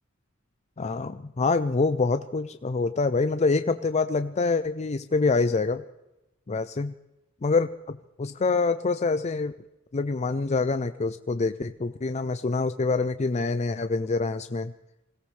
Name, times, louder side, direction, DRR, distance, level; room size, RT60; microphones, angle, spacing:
voice 1, 0.8-5.8 6.5-6.9 7.4-9.5 9.9-14.7, left 3 dB, 30° left, 10 dB, 0.5 m, -26 dB
25.5 x 17.5 x 3.3 m, 0.94 s
head